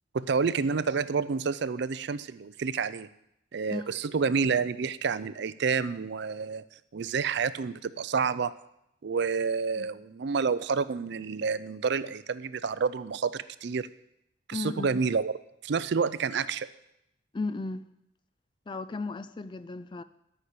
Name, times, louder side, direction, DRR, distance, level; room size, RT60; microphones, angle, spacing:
voice 1, 0.1-3.1 3.5-6.6 6.9-8.5 9.0-13.9 14.5-15.3 15.6-16.7, right 5 dB, 55° right, 0.4 m, -29 dB
voice 2, 14.5-15.0 17.3-17.8 18.7-20.0, left 3 dB, 25° left, 0.4 m, -35 dB
13.0 x 5.8 x 6.7 m
head